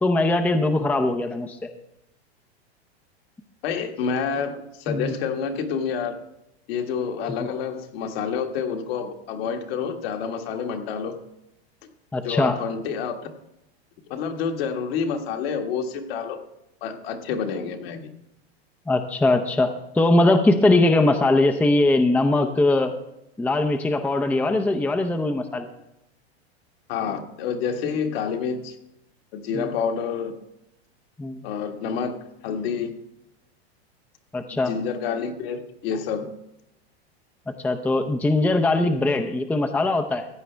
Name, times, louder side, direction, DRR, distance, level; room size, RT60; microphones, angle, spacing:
voice 1, 0.0-1.6 4.9-5.1 12.1-12.6 18.9-22.9 23.4-25.7 29.5-29.7 31.2-31.4 34.3-34.7 37.6-40.3, left 2 dB, 5° left, 7 dB, 0.6 m, -21 dB
voice 2, 3.6-6.2 6.7-11.2 12.2-13.3 14.1-16.4 16.8-18.1 26.9-28.8 29.3-30.3 31.4-32.9 34.6-36.3, left 6 dB, 65° left, 4 dB, 1.8 m, -28 dB
15.0 x 9.1 x 3.4 m, 0.85 s
hypercardioid pair, 115°, 32 cm